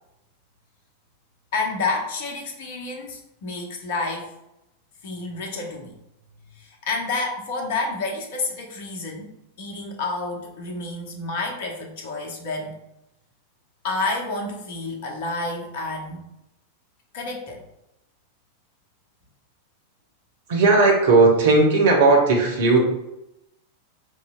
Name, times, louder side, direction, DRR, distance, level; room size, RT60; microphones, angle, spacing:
voice 1, 1.5-4.3 5.0-5.9 6.6-12.7 13.8-16.2 17.1-17.6, left 3 dB, 55° left, 1 dB, 0.8 m, -29 dB
voice 2, 20.5-22.8, right 3 dB, 55° right, 0 dB, 0.9 m, -16 dB
4.7 x 2.8 x 2.3 m, 0.88 s
figure-of-eight pair, 90°, 0 cm